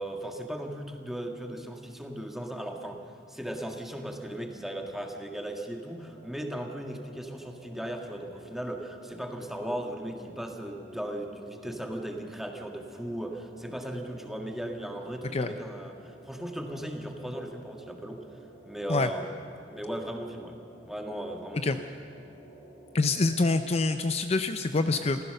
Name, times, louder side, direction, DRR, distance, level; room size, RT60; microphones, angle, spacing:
voice 1, 0.0-3.0 3.3-18.2 18.6-20.6 20.8-21.8 24.9-25.1, right 1 dB, ahead, 2 dB, 1.7 m, -37 dB
sound 1, 5.9-23.3, right 1 dB, 55° left, 7.2 m, -51 dB
voice 2, 22.9-25.2, left 3 dB, 35° left, 9 dB, 0.6 m, -26 dB
28.0 x 15.0 x 6.7 m, 2.4 s
head